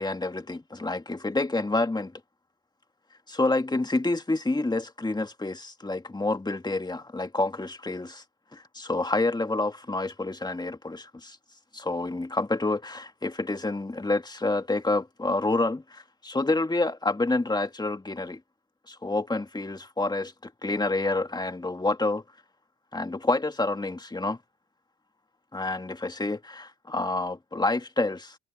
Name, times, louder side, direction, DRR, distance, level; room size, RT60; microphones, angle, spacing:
voice 1, 0.0-2.2 3.3-8.2 8.5-11.4 11.7-18.4 18.9-22.2 22.9-24.4 25.5-28.4, left 2 dB, 15° left, 2.2 m, -28 dB
cardioid pair, 90°, 30 cm